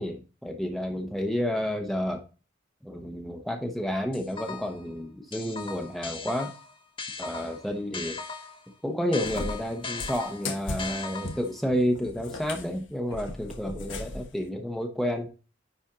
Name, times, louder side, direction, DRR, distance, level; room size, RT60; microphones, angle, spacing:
voice 1, 0.0-2.2 2.8-6.5 7.2-8.2 8.8-15.3, equal, ahead, 2 dB, 1.0 m, -30 dB
sound 1, 4.1-4.8 5.3-8.7 9.1-11.6, left 4 dB, 25° left, 1.0 m, -38 dB
Cat, 9.2-14.3, left 2 dB, 85° left, 1.3 m, -37 dB
10.0 x 4.4 x 3.8 m, 0.33 s
head